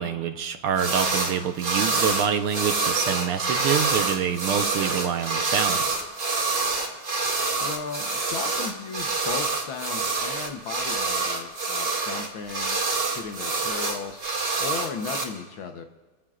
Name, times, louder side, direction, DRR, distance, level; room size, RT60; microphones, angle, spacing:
voice 1, 0.0-6.0, right 8 dB, 80° right, 7 dB, 1.8 m, -26 dB
sound 1, 0.8-1.3 1.6-15.2, right 3 dB, 50° right, 3.0 m, -26 dB
voice 2, 7.6-12.8 13.2-14.2 14.6-15.9, left 5 dB, 70° left, 5 dB, 1.8 m, -35 dB
29.0 x 15.5 x 2.5 m, 1.3 s
omnidirectional pair, 2.4 m